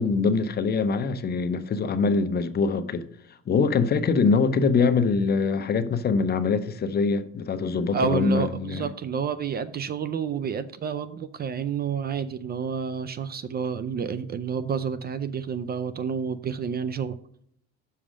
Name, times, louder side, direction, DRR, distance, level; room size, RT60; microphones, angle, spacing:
voice 1, 0.0-3.1 3.5-8.9, left 4 dB, 30° left, 0.6 m, -23 dB
voice 2, 7.9-17.2, right 6 dB, 30° right, 0.4 m, -29 dB
6.2 x 5.5 x 5.0 m
supercardioid pair, 105°, 30 cm